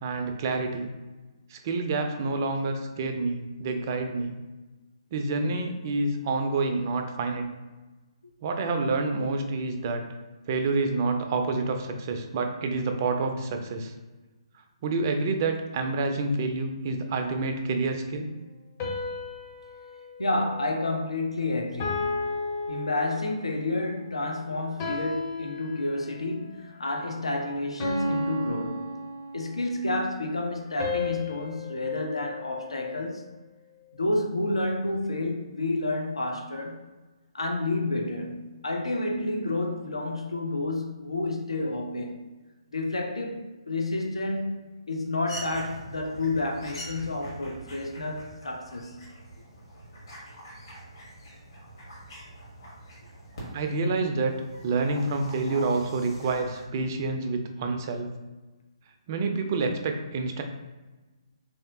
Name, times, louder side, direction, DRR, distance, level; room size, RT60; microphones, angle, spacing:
voice 1, 0.0-0.9 1.5-4.3 5.1-7.5 8.4-10.1 10.5-13.9 14.8-18.3 53.5-54.3 54.6-58.1 59.1-60.4, right 3 dB, 30° right, 5 dB, 0.4 m, -28 dB
sound 1, 18.8-21.3 21.8-23.5 24.8-26.3 27.8-29.7 30.8-33.2, left 3 dB, 25° left, 0.7 m, -34 dB
voice 2, 20.2-22.4 22.7-29.0 29.3-33.3 34.0-36.9 37.3-42.3 42.7-44.6 44.9-49.0, left 2 dB, 70° left, 1 dB, 0.5 m, -30 dB
sound 2, 45.2-56.7, equal, 50° left, 1.2 m, -44 dB
3.3 x 2.7 x 2.7 m, 1.2 s
figure-of-eight pair, 135°, 3 cm